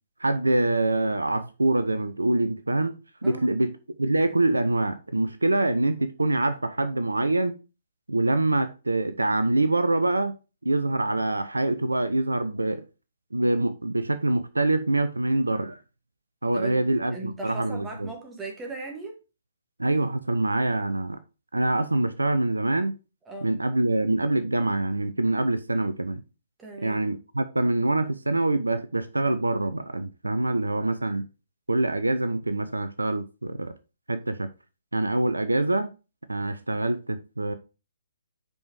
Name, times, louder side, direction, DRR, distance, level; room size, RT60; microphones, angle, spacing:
voice 1, 0.2-3.7 4.0-7.6 8.1-10.3 10.6-12.8 13.3-15.8 16.4-18.1 19.8-21.2 21.5-22.9 23.4-26.2 26.8-31.3 31.7-33.7 34.1-34.5 34.9-35.9 36.3-37.5, right 2 dB, 75° right, 0.6 m, -25 dB
voice 2, 17.1-19.2 23.2-23.5 26.6-27.0, right 3 dB, 10° right, 1.7 m, -38 dB
5.3 x 5.0 x 4.7 m
figure-of-eight pair, 130°, 0 cm